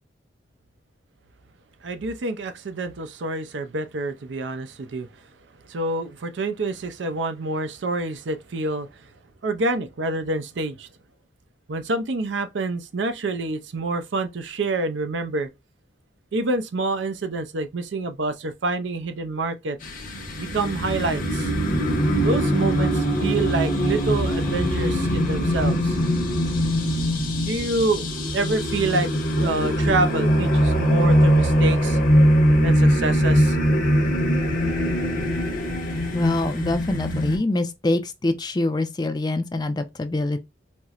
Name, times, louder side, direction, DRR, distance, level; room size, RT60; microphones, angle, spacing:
voice 1, 1.8-5.1 5.7-8.9 9.4-10.9 11.7-15.5 16.3-19.8 20.4-21.5 22.2-26.0 27.4-28.1 28.3-29.1 29.4-32.0 32.6-33.6, right 2 dB, 85° right, 0.5 m, -27 dB
sound 1, 19.8-37.4, equal, 50° left, 0.8 m, -21 dB
voice 2, 36.1-40.4, left 2 dB, 25° left, 0.4 m, -24 dB
4.2 x 2.1 x 2.4 m
head